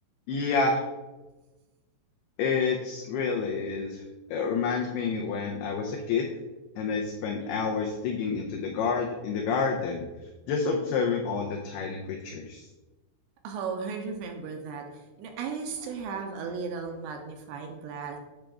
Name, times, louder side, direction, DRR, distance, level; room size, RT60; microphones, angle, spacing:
voice 1, 0.3-0.8 2.4-4.0 4.3-6.3 6.8-10.1 10.5-12.7, left 5 dB, 85° left, 1 dB, 2.2 m, -28 dB
voice 2, 13.4-18.2, right 5 dB, 80° right, 3 dB, 2.8 m, -35 dB
8.8 x 3.4 x 6.2 m, 1.1 s
omnidirectional pair, 5.5 m